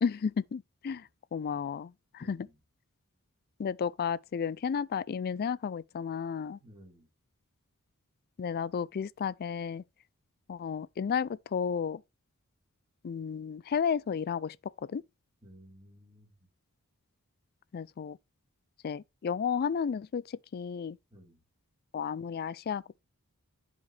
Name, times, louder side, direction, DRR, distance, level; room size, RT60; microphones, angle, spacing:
voice 1, 0.0-2.5 3.6-6.6 8.4-9.8 10.5-12.0 13.0-14.6 14.9-15.0 17.7-18.2 18.8-21.0 21.9-23.0, left 6 dB, 45° left, 0.3 m, -33 dB
voice 2, 2.2-2.6 6.6-7.1 15.4-16.3 21.1-21.4, equal, 20° right, 4.7 m, -55 dB
10.5 x 5.1 x 3.3 m
head